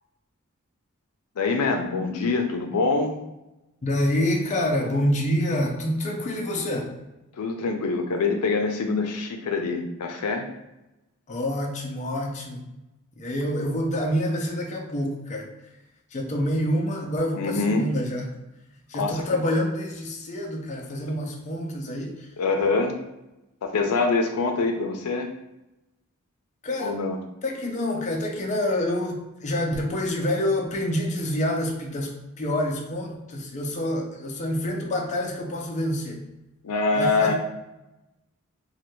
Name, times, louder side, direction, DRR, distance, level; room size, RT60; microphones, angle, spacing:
voice 1, 1.4-3.2 7.4-10.5 17.4-17.9 18.9-19.2 22.4-23.0 23.6-25.3 26.8-27.2 36.6-37.3, left 3 dB, 85° left, 4 dB, 0.4 m, -24 dB
voice 2, 3.8-6.9 11.3-12.6 13.1-15.5 16.1-18.3 18.9-22.3 26.6-27.0 27.4-36.3 36.9-37.3, left 1 dB, 35° left, 0 dB, 0.5 m, -27 dB
3.2 x 2.2 x 3.0 m, 0.95 s
head